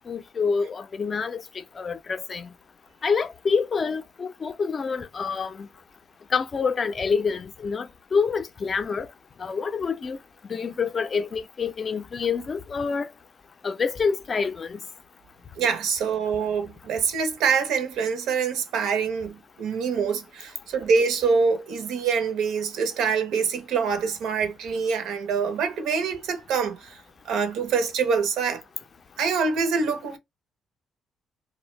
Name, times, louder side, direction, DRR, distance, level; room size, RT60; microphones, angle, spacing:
voice 1, 0.1-2.5 3.0-5.7 6.3-9.1 9.4-10.2 10.5-13.1 13.6-14.8, left 5 dB, 35° left, 0.4 m, -27 dB
voice 2, 15.6-28.6 29.2-30.2, right 5 dB, 85° right, 0.6 m, -25 dB
2.5 x 2.1 x 3.1 m
cardioid pair, 120°, 0 cm